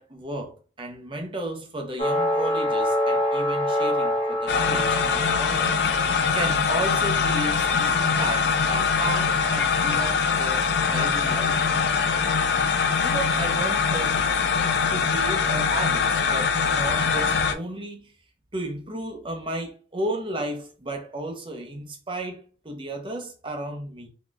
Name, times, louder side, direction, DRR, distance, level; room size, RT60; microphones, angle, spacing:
voice 1, 0.0-5.8 6.3-11.6 13.0-14.2 14.6-18.1 18.5-24.1, right 1 dB, 30° right, 0.8 m, -33 dB
sound 1, 2.0-6.0, equal, 35° left, 0.9 m, -25 dB
sound 2, 4.5-17.5, left 5 dB, 70° left, 0.5 m, -23 dB
4.1 x 3.0 x 2.4 m
head